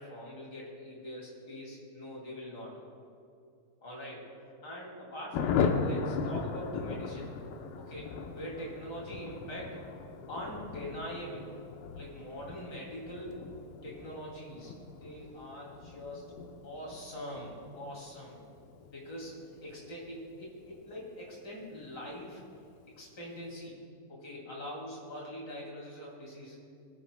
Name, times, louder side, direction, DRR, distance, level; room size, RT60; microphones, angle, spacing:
voice 1, 0.0-2.8 3.8-4.3 4.6-7.3 7.8-9.8 10.3-11.5 12.0-13.4 13.8-16.3 16.6-18.4 18.9-22.4 23.0-23.7 24.1-26.5, equal, 30° left, -3 dB, 2.3 m, -43 dB
Thunder, 5.3-21.5 21.7-21.8 22.1-22.3 22.5-22.9, left 5 dB, 85° left, 2.1 m, -38 dB
22.5 x 11.5 x 2.2 m, 2.5 s
omnidirectional pair, 5.2 m